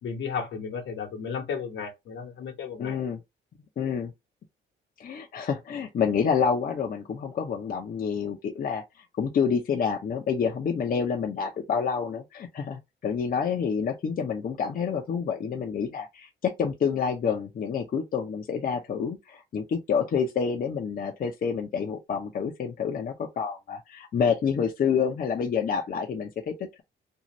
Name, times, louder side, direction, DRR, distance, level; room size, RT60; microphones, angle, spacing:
voice 1, 0.0-3.0, left 6 dB, 75° left, 1.1 m, -34 dB
voice 2, 2.8-3.2 3.8-4.1 5.0-8.8 9.2-26.8, left 6 dB, 45° left, 0.6 m, -28 dB
2.7 x 2.4 x 3.0 m
cardioid pair, 90°, 20 cm